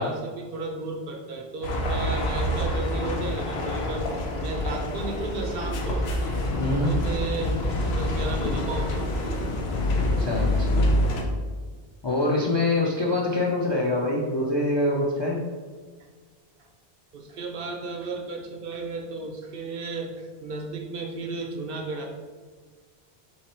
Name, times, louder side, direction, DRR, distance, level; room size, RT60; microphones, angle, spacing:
voice 1, 0.0-4.1 4.4-6.0 6.5-7.6 7.9-9.4 13.0-13.3 17.1-22.1, right 3 dB, 65° right, 2 dB, 0.8 m, -34 dB
sound 1, 1.6-11.2, left 1 dB, 90° left, 0.9 m, -26 dB
voice 2, 6.6-6.9 10.2-10.8 12.0-15.4, left 2 dB, 40° left, -3 dB, 0.4 m, -25 dB
3.3 x 3.1 x 4.3 m, 1.5 s
omnidirectional pair, 1.0 m